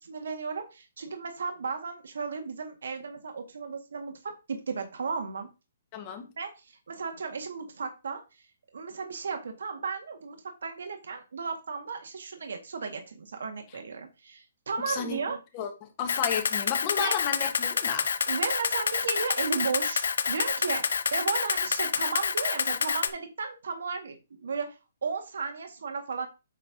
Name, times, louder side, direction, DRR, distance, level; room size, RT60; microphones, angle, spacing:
voice 1, 0.0-5.5 6.4-8.2 8.7-15.4 17.0-17.2 18.3-26.3, right 5 dB, 75° right, 1.7 m, -34 dB
voice 2, 5.9-6.3 14.9-15.2 15.5-18.1, left 8 dB, 20° left, 1.3 m, -32 dB
Camera, 16.1-23.1, left 6 dB, 70° left, 0.8 m, -28 dB
8.3 x 3.4 x 5.7 m
hypercardioid pair, 175°, 0 cm